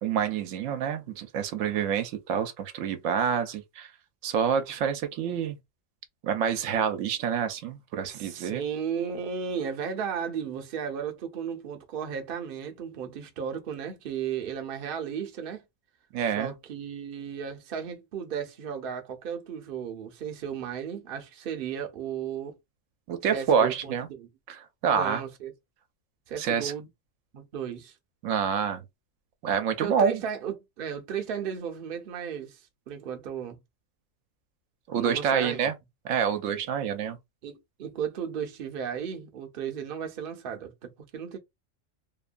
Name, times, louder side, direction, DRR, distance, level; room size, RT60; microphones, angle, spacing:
voice 1, 0.0-3.9 4.2-5.6 6.2-8.6 16.1-16.5 23.1-24.1 24.5-25.2 26.4-26.7 28.2-28.8 29.4-30.2 34.9-35.7 36.0-37.2, right 7 dB, 80° right, 0.9 m, -27 dB
voice 2, 8.0-15.6 16.4-22.6 23.3-24.3 24.9-25.5 26.3-26.9 27.3-27.9 29.8-32.6 32.9-33.6 34.9-35.6 37.4-41.4, right 7 dB, 55° right, 0.7 m, -35 dB
2.8 x 2.2 x 2.4 m
omnidirectional pair, 1.3 m